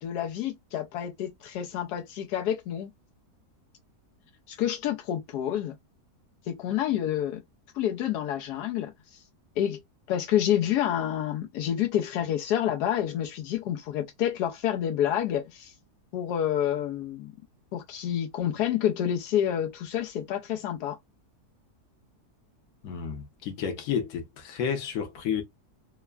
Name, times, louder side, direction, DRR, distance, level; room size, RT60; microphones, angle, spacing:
voice 1, 0.0-2.9 4.5-5.7 6.5-7.4 7.7-9.2 9.6-9.8 10.1-15.7 16.1-17.3 17.7-21.0, left 10 dB, 85° left, 1.1 m, -28 dB
voice 2, 22.8-25.4, left 7 dB, 65° left, 1.2 m, -31 dB
3.3 x 2.1 x 2.2 m
omnidirectional pair, 1.7 m